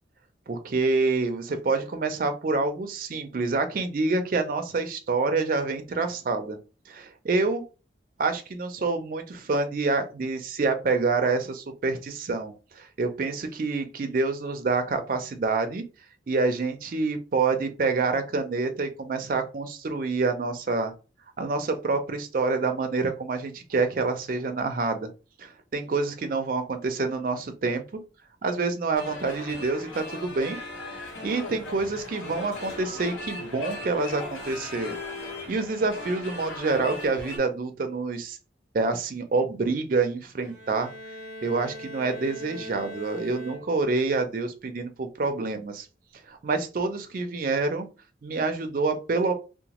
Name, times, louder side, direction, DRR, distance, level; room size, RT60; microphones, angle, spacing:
voice 1, 0.5-6.6 6.9-7.6 8.2-15.8 16.3-20.9 21.4-25.1 25.4-27.8 28.4-30.6 30.9-35.0 35.5-38.4 38.7-40.9 41.4-45.9 46.1-47.9 48.2-49.3, right 3 dB, 45° right, 6 dB, 0.4 m, -27 dB
sound 1, 28.9-37.4, left 2 dB, 85° left, 1.0 m, -38 dB
Bowed string instrument, 40.4-44.1, equal, 55° left, 1.3 m, -41 dB
2.9 x 2.1 x 2.9 m, 0.32 s
head